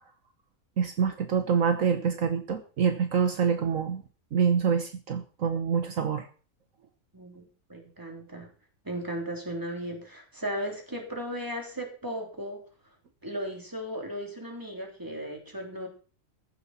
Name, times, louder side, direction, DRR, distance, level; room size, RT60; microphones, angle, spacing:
voice 1, 0.8-4.0 4.3-6.3, right 6 dB, 65° right, 7 dB, 1.5 m, -26 dB
voice 2, 7.1-8.5 8.8-12.6 13.2-15.9, equal, 15° right, 2 dB, 3.3 m, -36 dB
15.0 x 10.5 x 4.3 m, 0.39 s
omnidirectional pair, 1.5 m